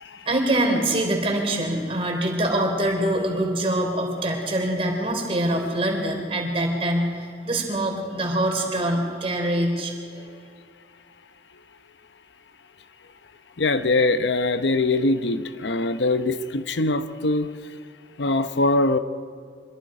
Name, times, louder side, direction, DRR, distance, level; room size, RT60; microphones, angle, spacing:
voice 1, 0.3-10.2, right 1 dB, 30° right, 3.6 m, -24 dB
voice 2, 13.6-17.5 18.2-19.0, left 2 dB, 80° left, 0.9 m, -22 dB
25.5 x 22.5 x 5.0 m
head